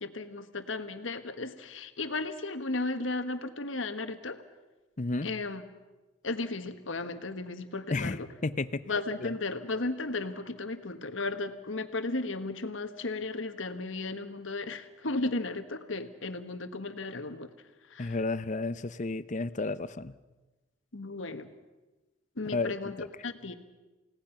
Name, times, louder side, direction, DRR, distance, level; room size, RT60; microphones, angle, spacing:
voice 1, 0.0-4.4 5.2-5.6 6.2-8.3 8.9-17.5 17.9-18.2 20.9-21.5 22.4-23.0 23.2-23.5, left 2 dB, 75° left, 9 dB, 1.5 m, -35 dB
voice 2, 5.0-5.3 7.9-8.9 9.2-9.3 18.0-20.1 22.5-23.1, left 3 dB, 40° left, 14 dB, 0.7 m, -32 dB
29.0 x 17.5 x 5.9 m, 1.1 s
head